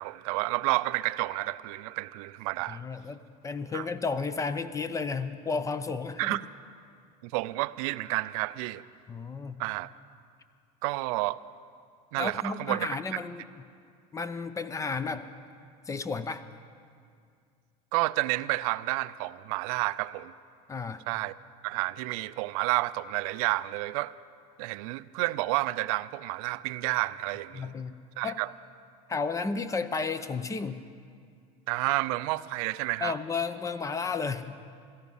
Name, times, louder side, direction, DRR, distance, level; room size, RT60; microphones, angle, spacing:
voice 1, 0.0-2.8 3.7-3.8 6.2-6.4 7.2-8.8 9.6-9.9 10.8-11.4 12.1-13.0 17.9-20.3 21.1-21.3 21.6-24.1 24.6-27.7 28.2-28.5 31.7-33.1, right 20 dB, 75° right, 15 dB, 0.5 m, -30 dB
voice 2, 2.7-3.2 3.4-6.4 9.1-9.5 12.2-13.4 14.1-15.3 15.9-16.4 20.7-21.0 27.5-28.0 28.2-28.4 29.1-30.8 33.0-34.5, left 4 dB, 15° left, 13 dB, 0.6 m, -32 dB
17.0 x 13.5 x 5.6 m, 2.3 s
supercardioid pair, 115°, 18 cm